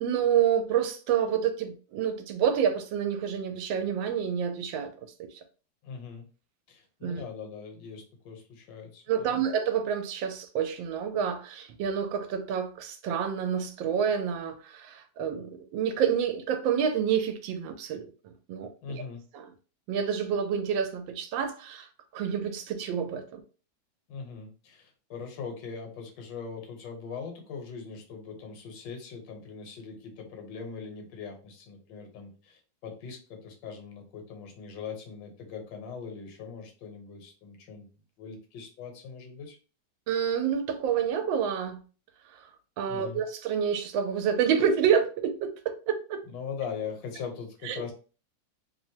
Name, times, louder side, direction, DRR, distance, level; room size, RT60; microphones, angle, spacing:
voice 1, 0.0-4.9 5.2-5.4 7.0-7.2 9.1-19.0 19.3-19.4 19.9-23.4 40.1-41.8 42.3-42.4 42.8-46.2 47.6-47.9, right 8 dB, 85° right, 1.3 m, -28 dB
voice 2, 5.8-6.3 6.7-9.4 18.8-19.2 24.1-37.9 38.2-39.6 42.9-43.2 46.3-47.9, left 6 dB, 75° left, 1.5 m, -41 dB
3.2 x 2.0 x 2.7 m
omnidirectional pair, 2.0 m